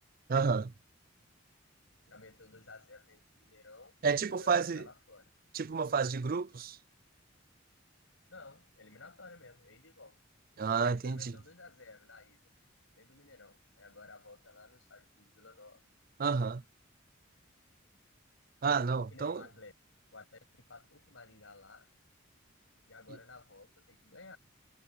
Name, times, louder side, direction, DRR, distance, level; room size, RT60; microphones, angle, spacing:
voice 1, 0.3-0.7 4.0-4.9 5.5-6.8 10.6-11.3 16.2-16.6 18.6-19.4, right 5 dB, 45° right, 0.5 m, -30 dB
voice 2, 2.0-4.0 4.3-5.2 8.3-10.2 10.9-12.4 13.0-15.8 19.1-19.7 20.1-21.9 22.9-24.4, left 3 dB, 75° left, 7.6 m, -54 dB
head